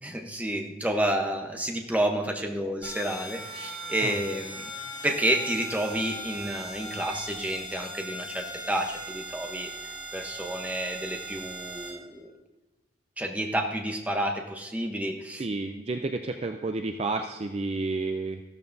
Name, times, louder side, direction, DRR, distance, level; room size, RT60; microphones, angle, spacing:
voice 1, 0.0-4.7 5.0-9.7 10.1-12.3 13.2-15.5, right 1 dB, 10° right, 3 dB, 0.8 m, -30 dB
sound 1, 2.8-11.9, right 1 dB, 10° left, 2.9 m, -39 dB
voice 2, 15.4-18.4, right 3 dB, 30° right, 6 dB, 0.4 m, -31 dB
14.5 x 12.5 x 2.6 m, 1.1 s
head